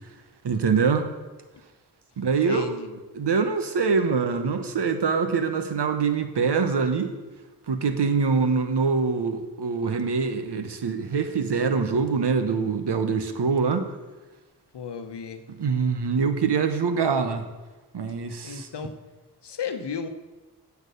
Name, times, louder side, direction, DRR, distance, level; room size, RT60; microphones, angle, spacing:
voice 1, 0.4-1.1 2.2-2.6 3.1-7.1 7.7-13.9 15.6-17.5 17.9-18.7, right 5 dB, 85° right, 8 dB, 1.1 m, -24 dB
voice 2, 2.4-3.0 14.7-15.4 18.4-19.0 19.4-20.1, left 6 dB, 85° left, 8 dB, 0.9 m, -34 dB
8.3 x 7.2 x 6.8 m, 1.2 s
cardioid pair, 45°, 40 cm